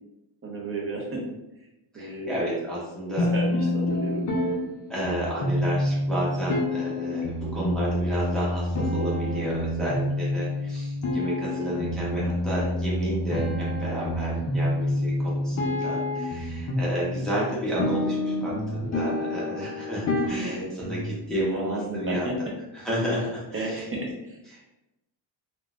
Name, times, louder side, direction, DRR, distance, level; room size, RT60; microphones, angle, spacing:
voice 1, 0.4-1.3 1.9-2.4 3.1-4.3 20.4-20.7 21.5-22.4 23.5-24.4, right 2 dB, 30° right, -1 dB, 0.6 m, -33 dB
voice 2, 1.9-3.3 4.9-22.4 22.7-23.9 24.5-24.8, right 1 dB, ahead, -7 dB, 0.7 m, -31 dB
sound 1, 3.2-21.2, left 1 dB, 40° left, 0.6 m, -28 dB
3.7 x 2.3 x 2.4 m, 0.94 s
cardioid pair, 140°, 49 cm